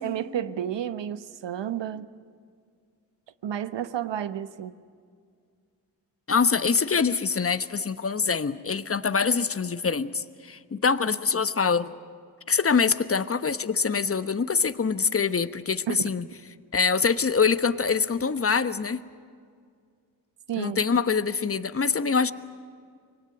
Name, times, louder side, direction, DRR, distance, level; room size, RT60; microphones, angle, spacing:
voice 1, 0.0-2.1 3.4-4.8 15.9-16.0 20.5-20.8, right 10 dB, 60° right, 13 dB, 1.1 m, -31 dB
voice 2, 6.3-11.9 12.5-16.2 16.7-19.0 20.6-22.3, left 5 dB, 30° left, 12 dB, 1.1 m, -24 dB
25.0 x 19.0 x 9.4 m, 2.2 s
supercardioid pair, 45°, 49 cm